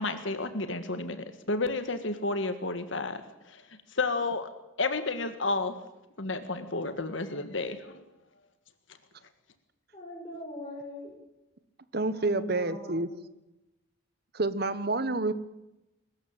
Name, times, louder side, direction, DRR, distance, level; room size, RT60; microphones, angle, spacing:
voice 1, 0.0-4.5 4.8-5.8 6.2-8.0, left 3 dB, 70° left, 9 dB, 1.7 m, -31 dB
voice 2, 9.9-11.1 12.1-13.1 15.1-15.2, equal, 25° left, -4 dB, 7.1 m, -41 dB
voice 3, 11.9-13.1 14.3-15.3, right 2 dB, 50° right, 14 dB, 1.2 m, -28 dB
22.5 x 13.5 x 8.9 m, 0.95 s
head